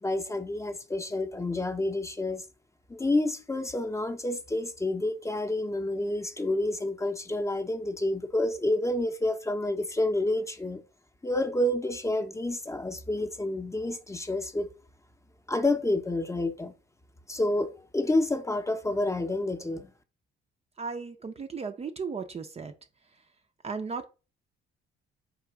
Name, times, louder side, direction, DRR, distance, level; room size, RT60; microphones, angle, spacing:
voice 1, 0.0-2.4 2.9-10.8 11.2-14.7 15.5-16.7 17.3-19.9, left 1 dB, 15° left, 0.7 m, -29 dB
voice 2, 20.8-22.7 23.6-24.1, right 5 dB, 30° right, 0.5 m, -35 dB
3.7 x 3.0 x 4.5 m
cardioid pair, 90°, 20 cm